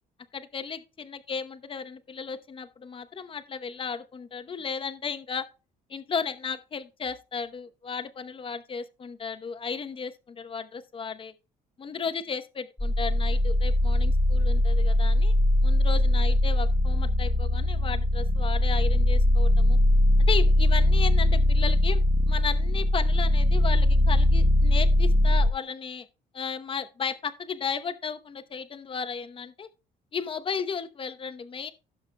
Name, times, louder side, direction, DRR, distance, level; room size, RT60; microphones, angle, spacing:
voice 1, 0.3-5.4 5.9-11.3 11.8-15.3 15.6-19.8 20.3-26.1 26.3-29.7 30.1-31.7, left 6 dB, 30° left, 0.9 m, -34 dB
sound 1, 12.8-25.5, left 1 dB, 5° left, 1.0 m, -21 dB
16.5 x 6.2 x 2.2 m
cardioid pair, 110°, 17 cm